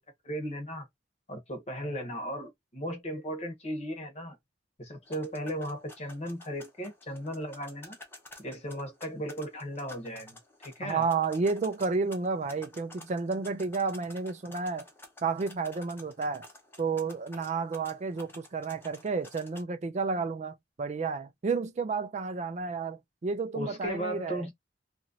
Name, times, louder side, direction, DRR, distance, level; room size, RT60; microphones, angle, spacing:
voice 1, 0.2-0.9 1.3-4.4 4.8-8.0 8.4-11.0 23.5-24.5, equal, 35° left, 1.0 m, -36 dB
sound 1, 5.1-19.6, left 2 dB, 10° left, 0.7 m, -52 dB
voice 2, 10.8-14.9 15.2-16.4 16.8-24.4, right 4 dB, 40° right, 0.4 m, -31 dB
2.9 x 2.5 x 2.7 m
head